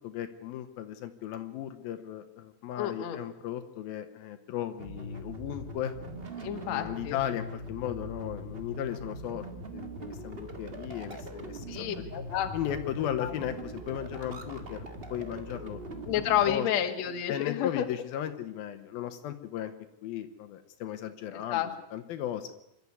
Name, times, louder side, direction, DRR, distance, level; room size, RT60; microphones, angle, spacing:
voice 1, 0.0-5.9 6.6-9.5 9.7-12.0 12.5-16.7 17.3-19.7 20.0-21.6 21.9-22.5, left 11 dB, 80° left, 8 dB, 2.8 m, -36 dB
voice 2, 2.8-3.2 6.4-7.2 11.7-13.3 16.1-17.9 21.5-21.7, left 10 dB, 55° left, 7 dB, 2.5 m, -30 dB
sound 1, 4.8-16.6, right 1 dB, 55° right, 0.6 m, -41 dB
25.5 x 12.0 x 9.5 m, 0.90 s
omnidirectional pair, 4.3 m